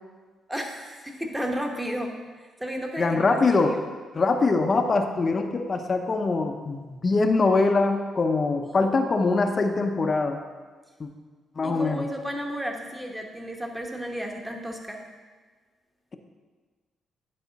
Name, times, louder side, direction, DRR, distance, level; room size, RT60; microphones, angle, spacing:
voice 1, 0.5-2.1 2.4-3.8 8.6-8.9 11.6-15.0, equal, 5° right, 2 dB, 1.1 m, -33 dB
voice 2, 3.0-3.8 4.1-10.4 11.0-11.1 11.6-12.1, left 3 dB, 35° left, 5 dB, 0.6 m, -23 dB
10.5 x 4.9 x 4.0 m, 1.4 s
cardioid pair, 90°, 0 cm